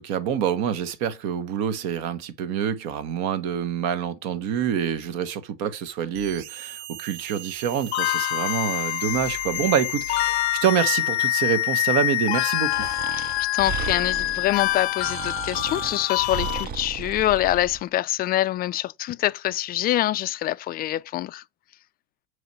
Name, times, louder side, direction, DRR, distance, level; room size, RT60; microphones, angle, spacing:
voice 1, 0.0-13.0, right 8 dB, 60° right, 1.2 m, -26 dB
sound 1, 6.1-11.0, right 10 dB, 75° right, 0.9 m, -40 dB
sound 2, 7.9-16.6, left 16 dB, 85° left, 0.7 m, -26 dB
Breathing, 12.7-17.8, right 7 dB, 30° right, 0.5 m, -35 dB
voice 2, 13.1-21.4, left 14 dB, 30° left, 0.4 m, -25 dB
6.8 x 3.2 x 5.4 m
supercardioid pair, 115°, 32 cm